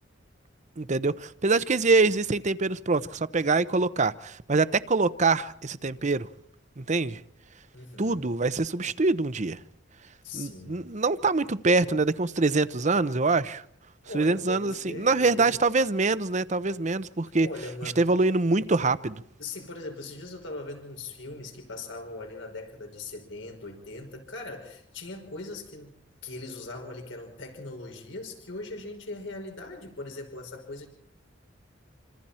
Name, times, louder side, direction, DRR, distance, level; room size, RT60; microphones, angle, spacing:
voice 1, 0.8-6.3 6.8-7.2 8.0-9.6 10.3-13.6 14.1-17.5 17.8-19.2, right 3 dB, 40° right, 0.8 m, -24 dB
voice 2, 7.7-8.3 10.2-10.8 14.0-15.6 17.4-18.1 19.4-26.0 26.2-30.9, left 2 dB, 80° left, 5.7 m, -40 dB
27.5 x 26.0 x 4.4 m
head